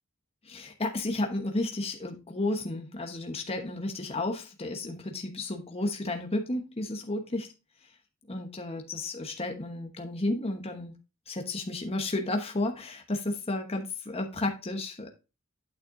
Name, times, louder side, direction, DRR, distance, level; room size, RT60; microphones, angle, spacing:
voice 1, 0.4-7.5 8.3-11.0 11.3-15.1, left 2 dB, 30° left, 4 dB, 1.1 m, -32 dB
8.9 x 6.7 x 2.6 m, 0.29 s
head